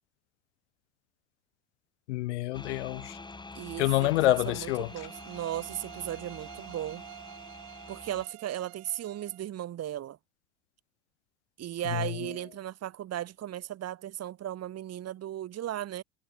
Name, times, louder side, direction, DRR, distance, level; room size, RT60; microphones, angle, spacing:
voice 1, 2.1-3.2 3.8-4.9 11.9-12.1, left 19 dB, 85° left, 1.0 m, -27 dB
sound 1, 2.5-8.3, left 3 dB, 15° left, 2.7 m, -46 dB
voice 2, 3.6-7.0 7.9-10.2 11.6-16.0, right 12 dB, 45° right, 5.3 m, -36 dB
sound 2, 4.7-9.5, right 40 dB or more, 70° right, 4.5 m, -49 dB
supercardioid pair, 95°, 34 cm